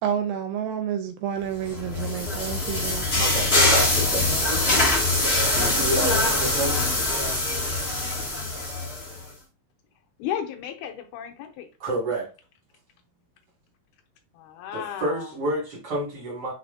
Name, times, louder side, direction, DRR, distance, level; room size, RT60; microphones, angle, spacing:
voice 1, 0.0-3.1, right 9 dB, 80° right, 2.3 m, -29 dB
sound 1, 1.6-9.2, left 2 dB, 25° left, 1.6 m, -23 dB
voice 2, 3.2-4.8 5.5-6.8 11.8-12.3 14.7-16.5, right 1 dB, 35° right, 1.8 m, -29 dB
voice 3, 10.2-11.7 14.3-15.3, left 10 dB, 80° left, 2.1 m, -34 dB
4.7 x 4.2 x 2.5 m
omnidirectional pair, 4.0 m